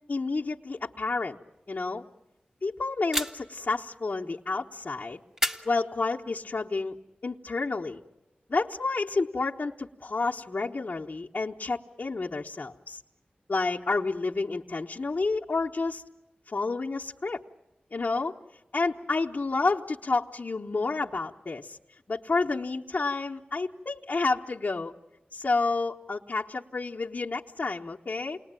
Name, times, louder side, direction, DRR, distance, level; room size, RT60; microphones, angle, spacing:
voice 1, 0.1-1.4 1.7-2.0 2.6-5.2 5.6-6.9 7.2-8.0 8.5-13.0 13.5-16.0 16.5-17.4 17.9-18.3 18.7-21.8 22.1-24.9 25.3-28.4, left 3 dB, 55° left, -2 dB, 1.0 m, -30 dB
sound 1, 3.1-3.7 5.4-6.4, equal, 15° right, 1.7 m, -32 dB
29.0 x 20.5 x 9.0 m, 1.0 s
wide cardioid pair, 55°, 3 cm